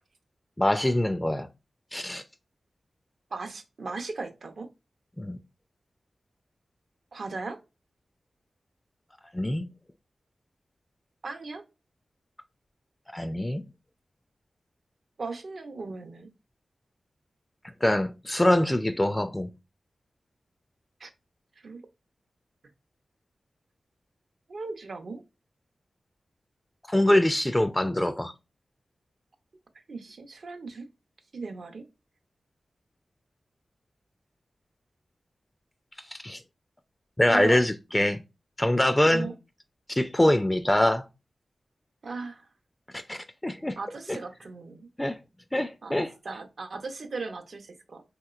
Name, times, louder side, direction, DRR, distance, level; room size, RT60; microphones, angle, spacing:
voice 1, 0.6-1.5 1.9-2.2 5.2-5.4 9.3-9.7 13.1-13.6 17.8-19.5 26.9-28.3 36.1-36.4 37.2-38.2 38.6-39.3 39.9-41.1 42.9-43.8 44.1-44.2 45.0-45.2 45.5-46.1, left 1 dB, 15° left, 0.3 m, -24 dB
voice 2, 3.3-4.7 7.1-7.6 11.2-11.6 15.2-16.3 21.0-21.1 21.6-21.8 24.5-25.2 29.9-30.9 31.3-31.9 37.3-37.6 39.1-39.3 42.0-42.5 43.8-44.9 45.8-48.0, right 3 dB, 70° right, 0.6 m, -37 dB
3.0 x 2.9 x 2.3 m
cardioid pair, 50°, 0 cm